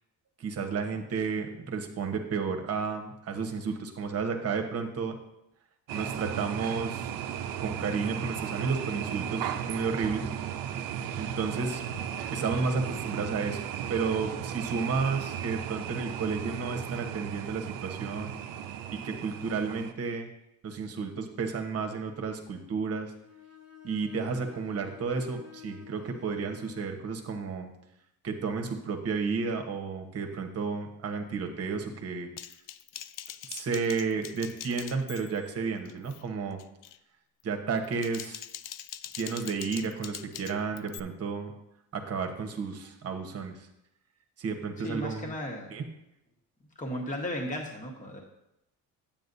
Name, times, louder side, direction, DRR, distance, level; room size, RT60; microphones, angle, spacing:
voice 1, 0.4-5.2 5.9-7.1 7.6-10.3 11.1-11.8 12.3-13.6 13.9-18.3 18.9-20.3 20.6-23.1 23.8-27.7 28.2-32.3 33.5-36.6 37.4-38.4 39.2-41.5 41.9-43.7 44.4-45.3 45.7-45.8, right 5 dB, 40° right, 4 dB, 1.1 m, -32 dB
sound 1, 5.9-19.9, right 9 dB, 65° right, 0.7 m, -35 dB
Bowed string instrument, 23.2-27.0, left 9 dB, 40° left, 1.0 m, -51 dB
Typing, 32.4-35.5 35.9-36.2 36.6-37.0 37.8-41.0, left 12 dB, 60° left, 0.5 m, -43 dB
voice 2, 44.8-45.7 46.8-48.2, equal, 20° left, 0 dB, 1.4 m, -35 dB
9.5 x 8.7 x 2.7 m, 0.83 s
cardioid pair, 115°, 36 cm